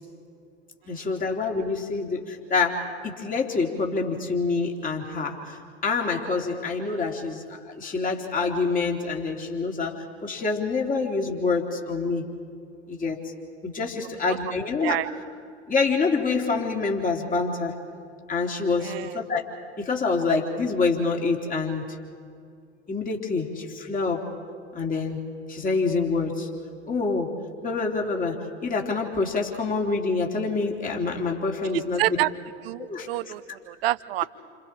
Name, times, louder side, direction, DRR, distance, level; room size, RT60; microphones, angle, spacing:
voice 1, 0.9-5.6 5.8-12.3 12.9-13.3 13.6-15.0 15.7-17.7 18.3-19.4 19.8-21.8 22.9-24.3 24.7-25.2 25.5-26.5 26.9-27.3 27.6-32.2 32.8-33.1, left 4 dB, 25° left, 1 dB, 3.3 m, -26 dB
voice 2, 18.8-19.1 31.7-32.3 32.6-34.2, right 17 dB, 60° right, 17 dB, 0.7 m, -27 dB
29.0 x 27.0 x 4.5 m, 2.3 s
figure-of-eight pair, 80°, 34 cm